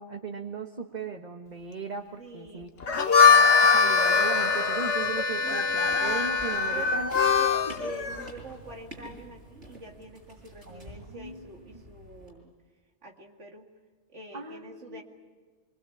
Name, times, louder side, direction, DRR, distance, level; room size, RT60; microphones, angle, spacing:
voice 1, 0.0-2.7 3.2-7.2 7.7-7.8 10.7-11.8 14.3-15.0, right 4 dB, 40° right, 3 dB, 1.4 m, -38 dB
voice 2, 2.2-2.7 5.4-6.2 6.7-12.5 13.0-13.7 14.1-15.0, right 3 dB, 80° right, 1 dB, 2.6 m, -45 dB
Chicken rooster, 2.8-8.8, left 3 dB, 75° left, 1.8 m, -31 dB
Harmonica, 2.8-7.8, left 5 dB, 60° left, 1.1 m, -22 dB
sound 1, 5.8-12.3, right 1 dB, 60° right, 7.5 m, -48 dB
25.0 x 23.0 x 8.5 m, 1.4 s
omnidirectional pair, 1.2 m